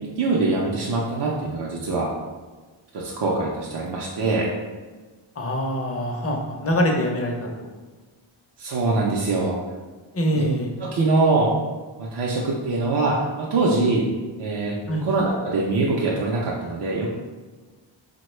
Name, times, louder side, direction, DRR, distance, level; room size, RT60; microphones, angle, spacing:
voice 1, 0.0-2.1 2.9-4.5 8.6-9.6 10.3-10.4 10.8-11.5 12.0-14.1 14.4-17.1, right 3 dB, 60° right, -3 dB, 0.6 m, -23 dB
voice 2, 5.4-7.7 10.1-10.7 14.9-15.0, equal, 30° left, 1 dB, 0.6 m, -24 dB
3.5 x 2.2 x 3.1 m, 1.3 s
cardioid pair, 70°, 48 cm